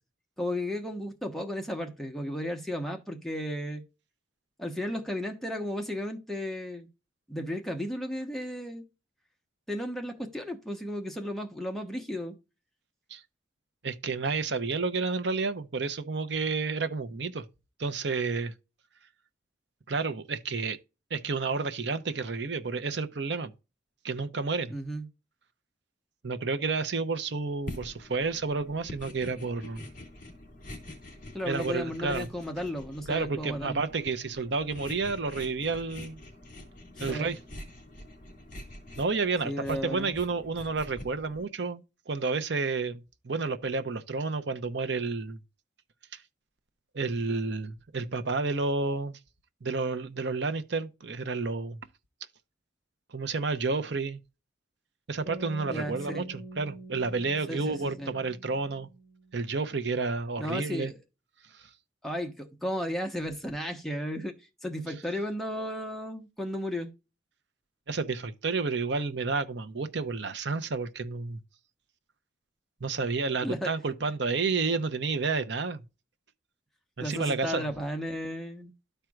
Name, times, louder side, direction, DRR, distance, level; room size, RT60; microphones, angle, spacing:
voice 1, 0.4-3.8 4.6-6.9 7.3-8.8 9.7-12.4 24.7-25.1 31.3-33.8 37.1-37.3 39.4-40.1 55.7-56.3 57.5-58.1 60.4-61.0 62.0-64.3 64.6-66.9 73.4-73.7 77.0-78.7, equal, ahead, 1.1 m, -34 dB
voice 2, 13.8-17.4 17.8-18.5 19.9-20.8 21.1-23.5 24.0-24.7 26.2-29.8 31.5-32.3 33.1-36.2 37.0-37.4 39.0-45.4 46.1-46.2 46.9-49.2 49.6-51.8 53.1-54.2 55.1-58.9 59.3-60.9 67.9-71.4 72.8-75.8 77.0-77.7, right 4 dB, 65° right, 0.8 m, -30 dB
sound 1, 27.7-41.5, left 1 dB, 45° left, 2.6 m, -46 dB
sound 2, 55.3-59.5, right 2 dB, 20° right, 1.3 m, -45 dB
13.0 x 4.5 x 2.4 m
head